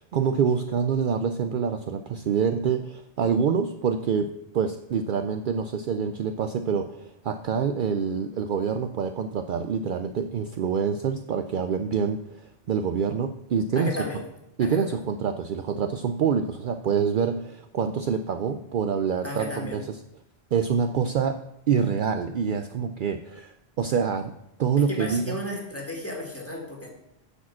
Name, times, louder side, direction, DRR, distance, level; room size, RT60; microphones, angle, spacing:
voice 1, 0.0-4.3 4.5-13.9 14.6-20.0 20.5-21.4 21.7-24.3 24.6-25.4, right 6 dB, 60° right, 7 dB, 0.6 m, -26 dB
voice 2, 13.7-14.2 14.6-15.0 19.2-19.8 24.8-26.9, left 1 dB, 15° left, -1 dB, 2.0 m, -34 dB
10.0 x 4.9 x 7.3 m, 0.83 s
omnidirectional pair, 1.1 m